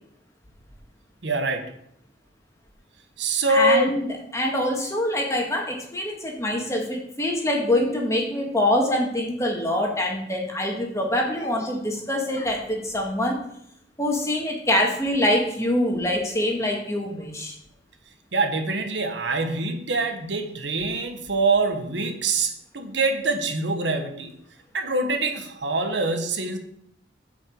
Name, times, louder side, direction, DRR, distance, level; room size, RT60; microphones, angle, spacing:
voice 1, 1.2-1.7 3.2-4.0 18.3-24.3 24.7-26.6, right 3 dB, 70° right, 6 dB, 1.3 m, -24 dB
voice 2, 3.5-4.1 4.3-13.4 14.0-17.5, left 1 dB, 15° left, 0 dB, 1.9 m, -24 dB
8.7 x 5.3 x 7.9 m, 0.73 s
head